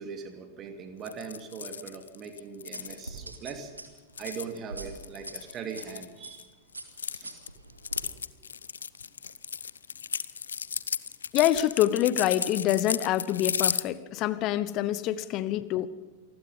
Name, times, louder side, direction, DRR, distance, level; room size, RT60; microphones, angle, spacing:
voice 1, 0.0-3.7 4.2-6.5 7.1-7.4, right 6 dB, 30° right, 2.8 m, -40 dB
sound 1, 1.1-3.2 4.0-6.4 6.7-13.8, left 7 dB, 70° left, 0.7 m, -34 dB
sound 2, 2.7-5.8 6.2-6.5 6.7-8.0, right 2 dB, 85° right, 2.6 m, -43 dB
voice 2, 11.3-15.9, left 13 dB, 40° left, 1.1 m, -26 dB
28.0 x 20.0 x 5.5 m
figure-of-eight pair, 90°, 0 cm